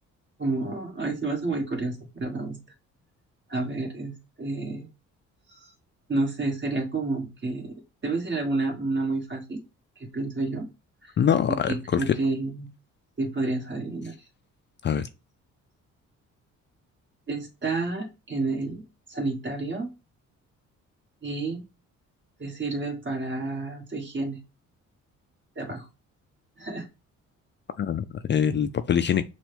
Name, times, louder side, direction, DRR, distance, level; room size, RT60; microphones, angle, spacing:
voice 1, 0.4-2.6 3.5-4.9 5.5-5.6 6.1-7.7 8.0-9.6 10.0-10.7 11.0-11.1 11.7-12.7 13.2-14.1 17.3-18.8 19.1-19.9 21.2-21.7 22.4-24.4 25.6-25.9 26.6-26.9, right 3 dB, 40° right, 1.8 m, -30 dB
voice 2, 11.2-12.1 14.8-15.1 27.8-29.2, left 8 dB, 40° left, 0.4 m, -24 dB
6.0 x 2.3 x 3.3 m
cardioid pair, 90°, 30 cm